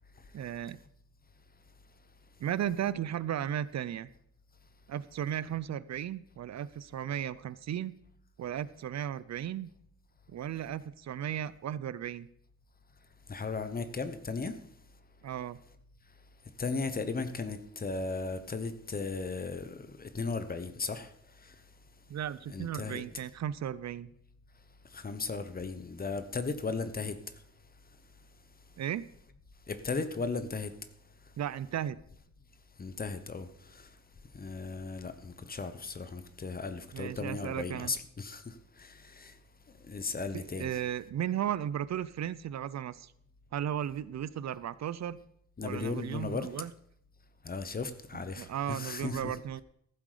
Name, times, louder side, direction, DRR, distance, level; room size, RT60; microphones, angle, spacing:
voice 1, 0.3-0.8 2.4-4.1 4.9-7.9 8.4-9.7 10.3-12.3 15.2-15.6 22.1-24.1 28.8-29.1 31.4-32.0 36.9-38.0 40.3-43.1 43.5-45.2 45.6-46.7 48.4-49.6, right 10 dB, 65° right, 0.5 m, -35 dB
voice 2, 13.3-14.5 16.6-21.1 22.5-23.2 24.9-27.2 29.7-30.7 32.8-33.8 34.3-39.3 39.9-40.7 45.6-46.7 47.4-49.4, left 4 dB, 30° left, 0.9 m, -36 dB
14.5 x 7.7 x 4.9 m
wide cardioid pair, 160°, 29 cm